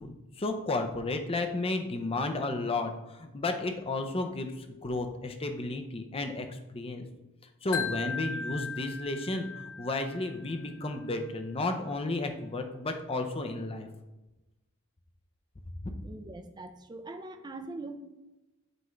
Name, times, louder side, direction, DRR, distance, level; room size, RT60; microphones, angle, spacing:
voice 1, 0.0-7.1 7.6-9.5 9.8-13.9 15.8-15.9, left 2 dB, 25° left, 6 dB, 0.6 m, -33 dB
Wind chime, 7.7-10.8, left 5 dB, 75° left, 0.7 m, -38 dB
voice 2, 16.0-18.0, right 2 dB, 20° right, 6 dB, 0.5 m, -42 dB
7.8 x 4.6 x 3.1 m, 1.0 s
head